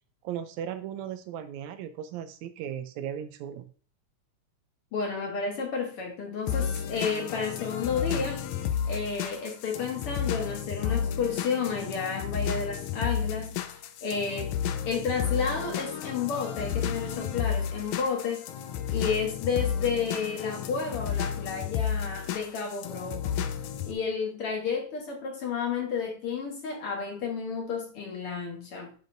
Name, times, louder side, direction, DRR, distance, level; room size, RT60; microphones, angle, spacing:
voice 1, 0.2-3.7, right 9 dB, 80° right, 1.8 m, -36 dB
voice 2, 4.9-8.4 8.8-14.6 14.8-18.5 18.9-23.4 23.9-28.9, left 5 dB, 60° left, 1.7 m, -31 dB
sound 1, 6.5-23.9, left 8 dB, 80° left, 1.9 m, -32 dB
8.3 x 6.4 x 2.6 m
omnidirectional pair, 3.4 m